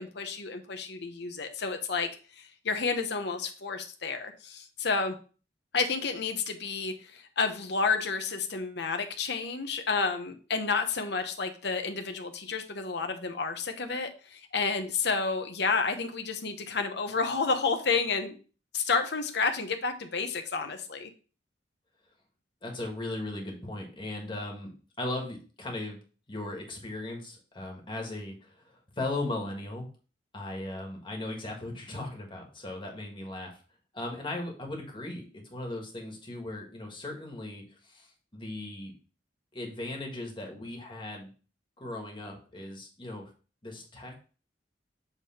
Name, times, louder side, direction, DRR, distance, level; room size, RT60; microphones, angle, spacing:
voice 1, 0.0-5.2 5.7-18.4 18.7-21.1, left 4 dB, 65° left, 6 dB, 0.9 m, -30 dB
voice 2, 22.6-24.7 25.0-26.0 26.3-29.9 30.3-33.6 33.9-38.9 39.5-41.3 41.8-43.3 43.6-44.2, left 2 dB, 25° left, 1 dB, 1.6 m, -37 dB
7.5 x 3.4 x 4.3 m, 0.37 s
head